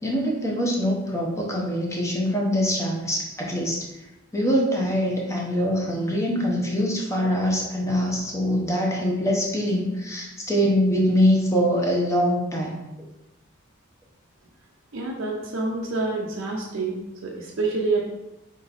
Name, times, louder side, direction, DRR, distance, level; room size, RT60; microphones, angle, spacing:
voice 1, 0.0-3.8 4.3-12.7, equal, 15° left, -2 dB, 0.8 m, -23 dB
voice 2, 14.9-18.0, right 3 dB, 70° right, -2 dB, 0.7 m, -27 dB
4.4 x 3.0 x 4.0 m, 0.96 s
head